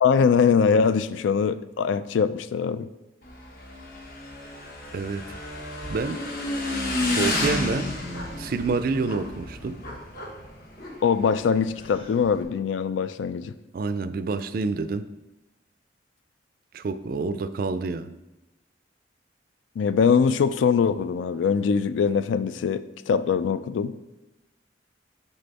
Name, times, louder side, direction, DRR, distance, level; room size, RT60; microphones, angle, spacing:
voice 1, 0.0-2.9 11.0-13.5 19.8-24.0, left 6 dB, 85° left, 0.3 m, -22 dB
Motorcycle / Engine, 3.2-12.4, left 2 dB, 50° left, 1.1 m, -31 dB
voice 2, 4.9-5.2 5.9-6.2 7.1-7.9 8.4-9.8 13.7-15.1 16.7-18.1, right 4 dB, 50° right, 0.3 m, -28 dB
Gasp, 11.7-12.2, equal, 30° left, 0.7 m, -47 dB
6.7 x 4.5 x 4.0 m
head